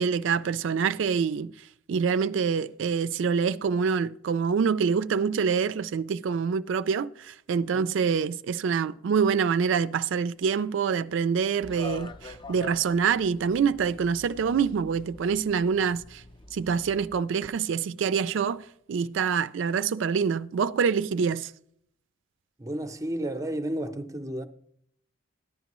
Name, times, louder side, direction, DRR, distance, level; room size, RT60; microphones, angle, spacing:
voice 1, 0.0-16.2 16.5-21.5, right 6 dB, 70° right, 0.4 m, -26 dB
sound 1, 11.6-17.1, left 2 dB, 25° left, 0.6 m, -45 dB
voice 2, 22.6-24.5, right 1 dB, 15° right, 0.7 m, -32 dB
14.0 x 10.5 x 3.0 m
head